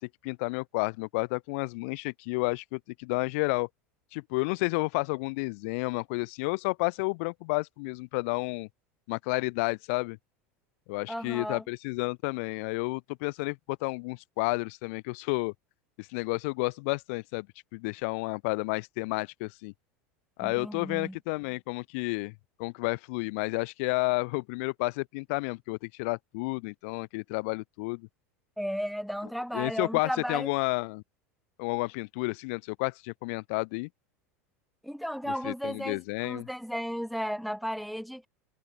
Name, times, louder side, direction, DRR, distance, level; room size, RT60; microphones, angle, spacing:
voice 1, 0.2-3.7 4.1-8.7 9.1-10.2 10.9-15.5 16.0-17.5 17.7-19.7 20.4-22.3 22.6-28.1 29.5-31.0 31.6-33.9 35.3-36.5, left 28 dB, 65° left, 4.9 m, -31 dB
voice 2, 11.1-11.6 20.4-21.2 28.6-30.5 34.8-38.3, equal, ahead, 5.9 m, -34 dB
hypercardioid pair, 95°, 8 cm